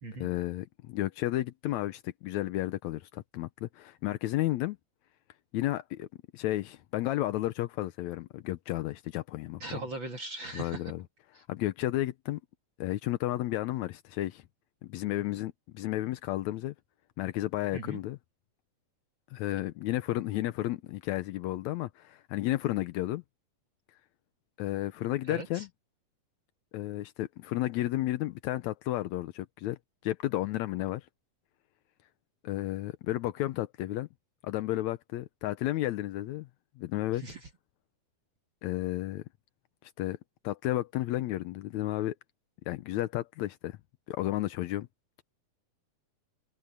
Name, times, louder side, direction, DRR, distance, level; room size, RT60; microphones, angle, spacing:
voice 1, 0.2-4.8 5.5-6.1 6.3-9.8 10.5-11.0 11.5-12.4 12.8-14.4 14.9-16.7 17.2-18.2 19.3-23.2 24.6-25.7 26.7-29.8 30.0-31.1 32.4-34.1 34.4-36.5 36.8-37.2 38.6-39.2 39.8-40.2 40.4-42.2 42.7-43.8 44.1-44.9, left 15 dB, 75° left, 1.7 m, -32 dB
voice 2, 9.6-10.8 11.3-11.4 17.7-18.0 25.3-25.6 37.2-37.4, right 2 dB, 45° right, 1.9 m, -39 dB
omnidirectional pair, 4.1 m